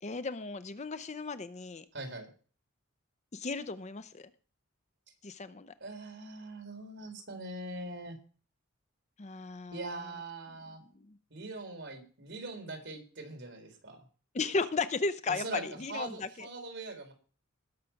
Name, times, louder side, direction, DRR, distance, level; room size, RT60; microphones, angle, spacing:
voice 1, 0.0-1.8 3.3-4.3 5.2-5.7 9.2-10.0 10.9-11.2 14.3-16.5, left 3 dB, 35° left, 12 dB, 0.6 m, -35 dB
voice 2, 1.9-2.3 5.8-8.2 9.7-10.8 11.3-14.0 15.3-15.6 15.9-17.1, right 2 dB, 55° right, 3 dB, 4.0 m, -42 dB
19.5 x 6.6 x 5.8 m, 0.40 s
head